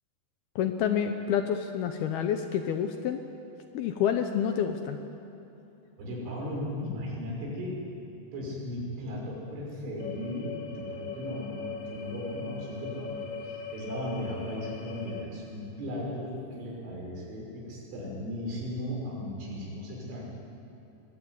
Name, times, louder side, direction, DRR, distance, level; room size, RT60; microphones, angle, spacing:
voice 1, 0.6-3.2 3.7-5.0, left 8 dB, 75° left, 7 dB, 2.4 m, -28 dB
voice 2, 6.0-7.8 8.3-20.2, left 1 dB, 85° right, -2 dB, 8.2 m, -36 dB
sound 1, 10.0-15.2, left 5 dB, 40° left, 2.8 m, -40 dB
23.0 x 21.0 x 9.7 m, 2.9 s
omnidirectional pair, 5.4 m